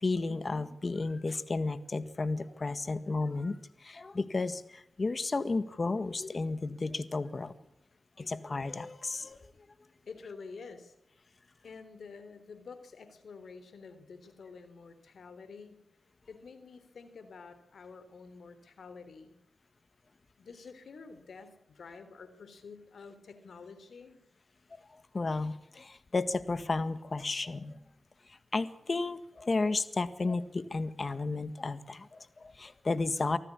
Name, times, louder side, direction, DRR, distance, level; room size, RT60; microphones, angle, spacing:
voice 1, 0.0-7.5 8.2-9.4 25.1-27.8 28.3-33.4, left 3 dB, 45° left, 13 dB, 1.7 m, -33 dB
voice 2, 10.1-10.9 11.6-15.8 16.3-19.3 20.4-24.2, left 4 dB, 80° left, 11 dB, 3.5 m, -49 dB
24.5 x 14.5 x 8.5 m, 0.84 s
cardioid pair, 55°, 0 cm